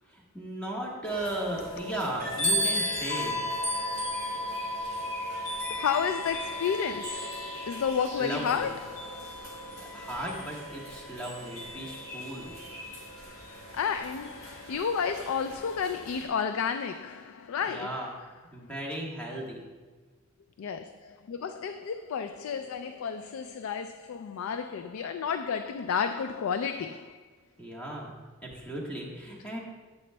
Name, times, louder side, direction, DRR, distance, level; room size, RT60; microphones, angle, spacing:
voice 1, 0.1-3.4 8.2-8.7 9.8-12.5 17.7-18.1 18.5-19.6 27.6-28.1 28.4-29.6, right 1 dB, 5° left, 1.3 m, -36 dB
sound 1, 1.0-16.2, equal, 35° left, 2.5 m, -35 dB
voice 2, 5.7-9.9 11.9-12.4 13.3-18.1 20.6-27.2, left 7 dB, 80° left, 0.3 m, -32 dB
11.0 x 8.4 x 2.2 m
head